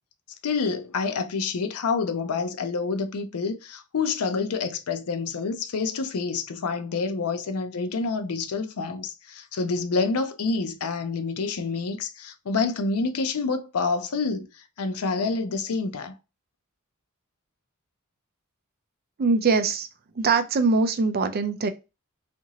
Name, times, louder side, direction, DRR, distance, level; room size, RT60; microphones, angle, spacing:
voice 1, 0.4-14.5 14.8-16.1, left 4 dB, 80° left, 0.5 m, -28 dB
voice 2, 19.2-19.9 20.1-21.7, right 4 dB, 45° right, 0.4 m, -22 dB
2.8 x 2.5 x 2.8 m
head